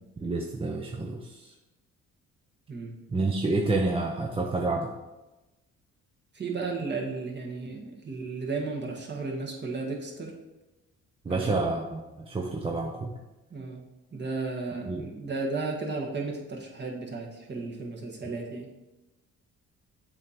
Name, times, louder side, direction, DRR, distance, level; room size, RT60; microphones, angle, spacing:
voice 1, 0.2-1.5 3.1-4.9 11.2-13.1 14.9-15.1, right 3 dB, 20° right, 0 dB, 0.6 m, -29 dB
voice 2, 6.3-10.4 11.3-11.6 13.5-13.8 14.1-18.7, right 3 dB, 35° right, -1 dB, 1.5 m, -34 dB
7.5 x 2.9 x 5.0 m, 1.0 s
cardioid pair, 90°, 30 cm